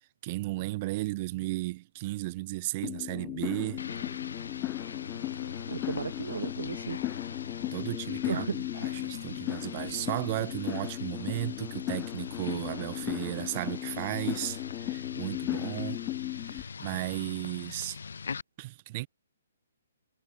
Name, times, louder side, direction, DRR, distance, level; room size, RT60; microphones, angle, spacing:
voice 1, 0.2-3.8 7.7-16.0 16.4-18.0 18.6-19.1, right 20 dB, 25° right, 2.2 m, -35 dB
sound 1, 2.8-16.6, left 19 dB, 15° left, 1.1 m, -36 dB
sound 2, 3.8-18.4, left 5 dB, 75° left, 1.1 m, -42 dB
voice 2, 5.7-7.0 8.3-8.5, right 6 dB, 70° right, 0.9 m, -34 dB
hypercardioid pair, 170°, 0 cm